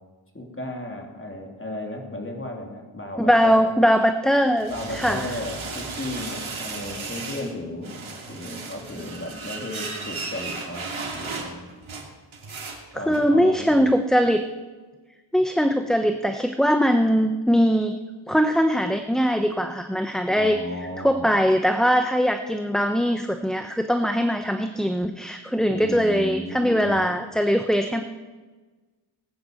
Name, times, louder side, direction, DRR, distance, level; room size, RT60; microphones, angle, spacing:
voice 1, 0.3-3.7 4.7-8.0 8.3-11.7 12.9-13.9 20.3-21.3 25.6-27.0, left 1 dB, 25° left, 1 dB, 3.2 m, -34 dB
voice 2, 3.2-5.3 12.9-14.4 15.3-18.0 18.3-20.6 21.0-28.0, equal, ahead, 6 dB, 0.8 m, -21 dB
sound 1, 4.3-7.6 7.8-13.3, right 4 dB, 75° right, 2.9 m, -35 dB
18.0 x 9.3 x 7.8 m, 1.3 s
wide cardioid pair, 75°, 48 cm